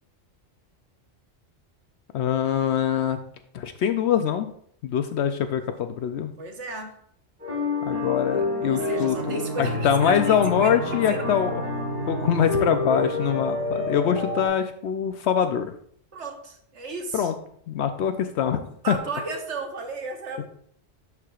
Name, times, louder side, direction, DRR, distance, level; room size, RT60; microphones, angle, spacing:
voice 1, 2.1-3.2 3.5-4.5 4.8-6.3 7.8-11.5 12.1-15.7 17.1-17.3 17.7-18.9, left 8 dB, 75° left, 8 dB, 0.8 m, -24 dB
voice 2, 6.4-7.0 8.6-10.8 11.1-11.2 16.1-17.3 18.8-20.5, right 3 dB, 85° right, 4 dB, 1.4 m, -34 dB
sound 1, 7.4-14.5, left 2 dB, 55° right, 3.1 m, -28 dB
11.5 x 4.8 x 2.4 m, 0.63 s
omnidirectional pair, 1.2 m